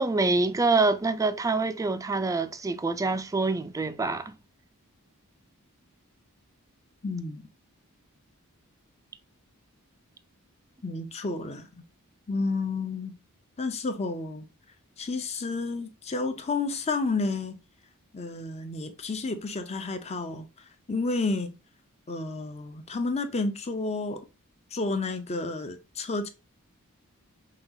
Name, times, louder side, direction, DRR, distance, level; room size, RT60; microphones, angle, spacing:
voice 1, 0.0-4.3, right 3 dB, 15° right, 0.3 m, -26 dB
voice 2, 7.0-7.4 10.8-11.7 12.3-13.2 13.6-14.5 15.0-17.6 18.1-20.5 20.9-21.5 22.1-24.3 24.7-26.3, left 3 dB, 30° left, 0.6 m, -31 dB
5.8 x 2.4 x 2.7 m
head